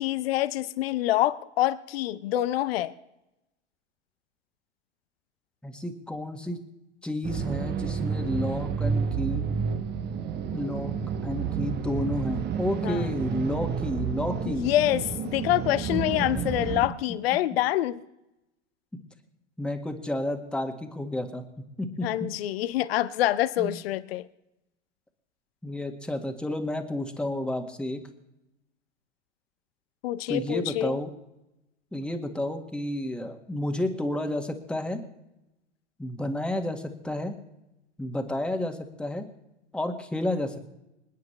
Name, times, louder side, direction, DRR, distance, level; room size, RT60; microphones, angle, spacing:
voice 1, 0.0-2.9 12.8-13.1 14.5-18.0 22.0-24.2 30.0-31.0, left 14 dB, 60° left, 15 dB, 0.7 m, -26 dB
voice 2, 5.6-6.6 7.0-9.5 10.5-10.9 11.2-14.7 15.9-16.9 19.6-21.4 21.8-22.3 23.6-23.8 25.6-28.0 30.3-31.1 31.9-35.0 36.0-37.3 38.0-39.3 39.7-40.7, left 1 dB, 5° left, 4 dB, 1.7 m, -31 dB
sound 1, 7.2-16.9, right 6 dB, 30° right, 1.1 m, -30 dB
27.0 x 9.4 x 3.3 m, 0.90 s
figure-of-eight pair, 90°, 35 cm